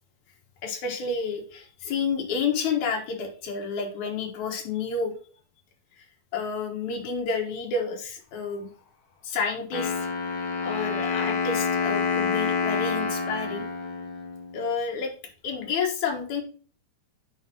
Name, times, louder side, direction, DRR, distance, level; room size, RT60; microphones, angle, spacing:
voice 1, 0.6-5.1 6.0-6.1 6.3-8.7 9.2-10.1 10.6-13.7 14.5-15.1 15.4-16.4, left 5 dB, 75° left, 1 dB, 2.7 m, -30 dB
Wind instrument woodwind instrument, 9.7-14.7, left 5 dB, 55° left, 1.7 m, -28 dB
10.5 x 4.6 x 2.8 m, 0.41 s
omnidirectional pair, 3.4 m